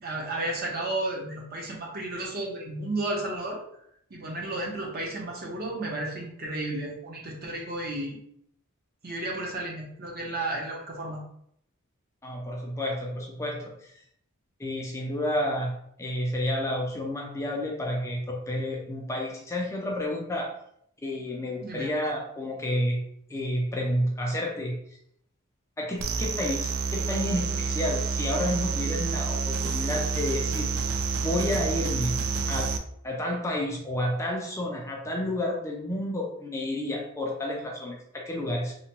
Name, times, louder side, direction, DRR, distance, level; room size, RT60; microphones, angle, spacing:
voice 1, 0.0-3.6 4.1-8.2 9.0-11.2 21.6-21.9, right 2 dB, 45° right, -2 dB, 0.7 m, -33 dB
voice 2, 12.2-14.0 14.6-15.7 16.0-20.5 21.0-23.0 23.3-24.8 25.8-30.7 31.2-32.2 32.5-32.7 33.0-38.7, left 1 dB, 15° left, -1 dB, 0.4 m, -30 dB
sound 1, 26.0-32.8, right 4 dB, 75° right, 0.3 m, -28 dB
2.8 x 2.2 x 2.8 m, 0.71 s
head